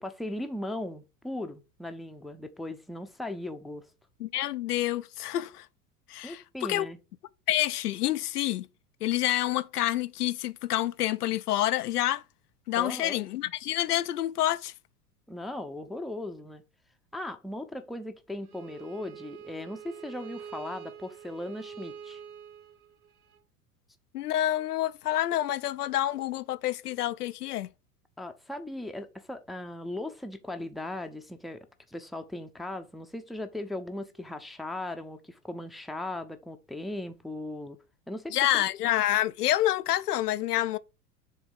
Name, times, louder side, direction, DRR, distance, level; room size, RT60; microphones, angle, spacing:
voice 1, 0.0-3.9 6.2-7.0 12.8-13.2 15.3-16.6 17.1-22.2 28.2-37.8 38.1-38.6, left 1 dB, ahead, 0.6 m, -38 dB
voice 2, 4.2-5.7 6.1-6.9 7.5-8.7 9.0-12.2 12.7-14.7 24.1-27.7 38.3-40.8, left 13 dB, 80° left, 0.5 m, -28 dB
Bowed string instrument, 18.4-23.4, right 8 dB, 70° right, 1.4 m, -46 dB
6.5 x 3.6 x 4.7 m
figure-of-eight pair, 85°, 46 cm